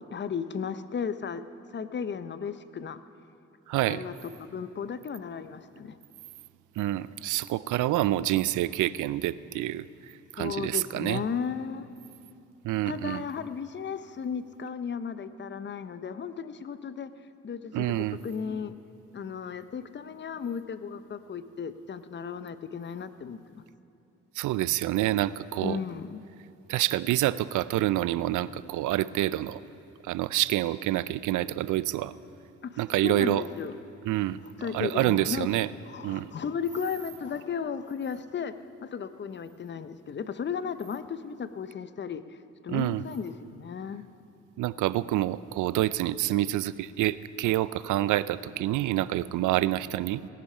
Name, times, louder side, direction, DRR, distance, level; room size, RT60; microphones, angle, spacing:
voice 1, 0.0-1.4 1.7-3.0 3.9-4.1 4.4-6.0 10.4-11.9 12.9-17.1 17.4-18.8 19.1-23.6 25.6-26.2 32.6-33.7 34.6-35.5 35.9-38.5 38.8-42.2 42.6-44.0, left 6 dB, 35° left, 12 dB, 0.6 m, -35 dB
voice 2, 3.7-4.0 6.8-9.8 10.3-11.2 12.6-13.2 17.7-18.2 24.4-25.8 26.7-29.6 30.0-32.1 32.8-33.4 34.1-35.7 36.0-36.3 42.7-43.0 44.6-50.3, right 15 dB, 80° right, 17 dB, 0.5 m, -27 dB
17.5 x 10.0 x 5.6 m, 2.8 s
cardioid pair, 80°, 30 cm